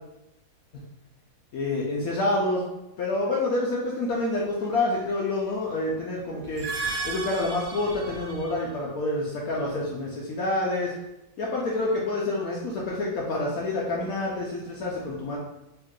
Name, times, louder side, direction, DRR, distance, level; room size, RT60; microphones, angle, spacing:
voice 1, 1.5-2.6 3.0-6.7 7.0-10.9 11.4-15.4, left 2 dB, 75° left, -3 dB, 0.8 m, -27 dB
sound 1, 6.4-8.7, right 4 dB, 85° right, 1.4 m, -34 dB
3.6 x 2.3 x 3.6 m, 0.92 s
omnidirectional pair, 2.1 m